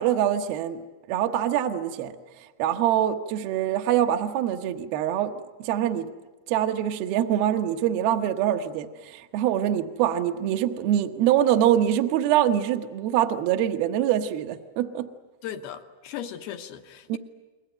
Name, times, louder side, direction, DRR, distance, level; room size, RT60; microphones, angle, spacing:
voice 1, 0.0-6.1 6.5-15.1 17.1-17.2, right 11 dB, 70° right, 5 dB, 2.5 m, -24 dB
voice 2, 15.4-17.2, left 9 dB, 70° left, 7 dB, 2.6 m, -37 dB
29.5 x 22.0 x 9.0 m, 1.2 s
omnidirectional pair, 5.6 m